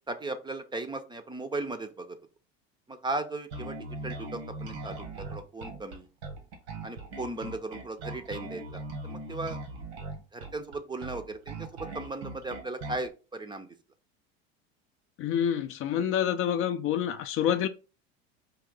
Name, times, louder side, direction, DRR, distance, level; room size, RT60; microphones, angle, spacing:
voice 1, 0.1-2.2 2.9-6.1 6.8-9.6 10.3-11.7 11.9-13.7, right 2 dB, 15° right, 0.5 m, -37 dB
Bass guitar, 3.5-13.1, right 2 dB, 90° right, 1.4 m, -40 dB
voice 2, 15.2-17.7, left 9 dB, 45° left, 0.5 m, -27 dB
4.6 x 2.8 x 3.9 m
hypercardioid pair, 95°, 31 cm